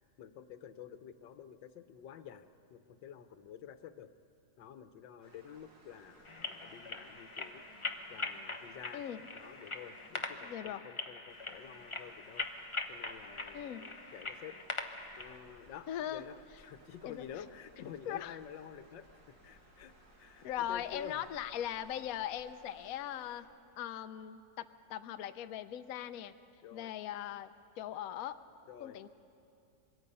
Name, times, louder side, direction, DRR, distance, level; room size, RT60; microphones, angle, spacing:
voice 1, 0.2-4.1 4.6-7.7 8.1-9.1 9.3-12.4 12.9-14.5 15.2-21.2 26.6-26.9 28.7-29.0, left 9 dB, 85° left, 10 dB, 1.6 m, -50 dB
sound 1, 5.2-10.5 11.3-23.4, right 1 dB, 80° right, 3.2 m, -62 dB
sound 2, 6.2-15.4, left 3 dB, 25° left, 0.7 m, -42 dB
voice 2, 8.9-9.3 10.4-10.8 13.5-13.9 15.9-16.2 17.0-17.2 17.8-18.4 20.4-23.5 23.8-26.3 26.7-27.5 27.8-28.4 28.8-29.1, left 11 dB, 65° left, 10 dB, 1.0 m, -40 dB
26.5 x 23.0 x 5.5 m, 2.6 s
omnidirectional pair, 1.9 m